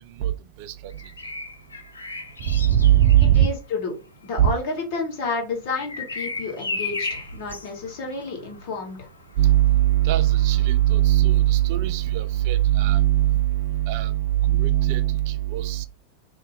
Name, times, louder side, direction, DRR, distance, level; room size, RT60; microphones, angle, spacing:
voice 1, 0.6-0.9 2.5-3.5 4.4-4.5 9.4-15.9, right 13 dB, 45° right, 0.3 m, -19 dB
Bird vocalization bird call bird song, 0.9-12.7 14.4-14.6, left 3 dB, 75° left, 0.4 m, -37 dB
voice 2, 3.2-3.9 4.2-9.0, left 3 dB, 50° left, 1.1 m, -30 dB
2.3 x 2.1 x 3.4 m
figure-of-eight pair, 90°, 0 cm